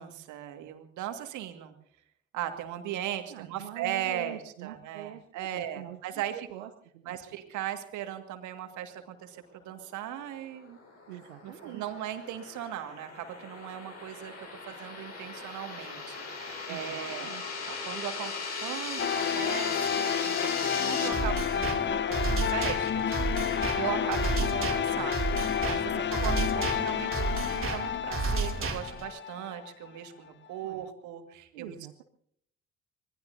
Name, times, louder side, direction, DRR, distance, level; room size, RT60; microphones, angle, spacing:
voice 1, 0.0-1.7 2.3-6.5 7.1-10.8 11.4-17.3 17.7-18.3 18.6-23.1 23.5-31.7, right 11 dB, 65° right, 7 dB, 2.0 m, -38 dB
voice 2, 3.3-6.2 6.5-7.4 11.1-11.8 16.7-17.4 25.9-26.3 30.6-30.9 31.5-32.0, right 13 dB, 85° right, 5 dB, 0.8 m, -45 dB
sound 1, 10.6-21.1, left 4 dB, 55° left, 4.7 m, -38 dB
sound 2, 19.0-29.9, left 9 dB, 35° left, 0.7 m, -30 dB
sound 3, 21.1-29.1, right 4 dB, 40° right, 2.9 m, -32 dB
26.0 x 20.0 x 2.7 m, 0.69 s
hypercardioid pair, 45°, 31 cm